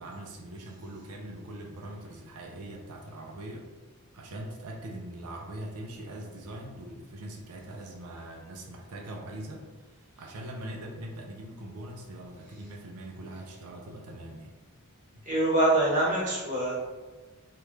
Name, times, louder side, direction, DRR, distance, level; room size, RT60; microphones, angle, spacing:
voice 1, 0.0-3.7 4.1-14.5 15.1-15.2, right 1 dB, 85° right, 0 dB, 0.5 m, -42 dB
voice 2, 15.2-16.7, right 1 dB, 35° right, -6 dB, 1.0 m, -24 dB
3.1 x 2.4 x 3.1 m, 1.3 s
head